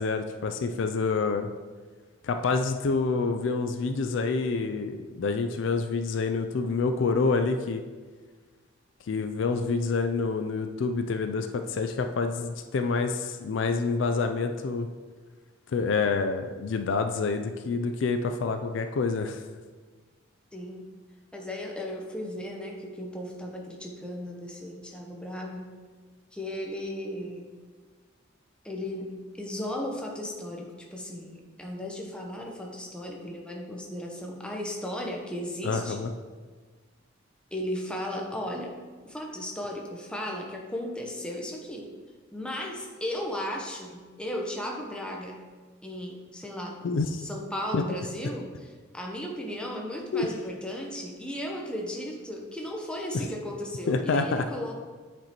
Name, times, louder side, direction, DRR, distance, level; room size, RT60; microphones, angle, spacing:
voice 1, 0.0-1.5 2.2-7.8 9.1-14.9 15.7-19.4 35.6-36.1 46.8-47.2 47.7-47.8 50.1-50.3 53.9-54.5, left 4 dB, 65° left, 6 dB, 0.4 m, -27 dB
voice 2, 20.5-20.8 21.3-25.8 26.3-27.5 28.6-36.0 37.5-38.7 39.0-41.9 42.3-45.4 45.8-46.8 47.2-48.5 48.9-54.7, left 1 dB, 5° left, 0 dB, 0.8 m, -35 dB
8.6 x 5.2 x 3.0 m, 1.4 s
head